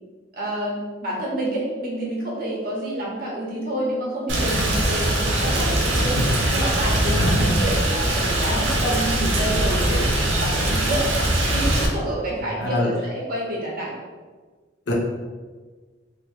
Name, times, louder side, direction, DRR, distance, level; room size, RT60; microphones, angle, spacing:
voice 1, 0.3-6.2 6.5-10.1 10.3-13.9, right 1 dB, 50° right, -4 dB, 0.9 m, -28 dB
Rain, 4.3-11.9, right 1 dB, 85° right, 0.6 m, -21 dB
voice 2, 7.1-7.6 12.6-12.9 14.9-15.0, left 1 dB, 65° left, -2 dB, 0.7 m, -25 dB
2.9 x 2.0 x 3.4 m, 1.4 s
head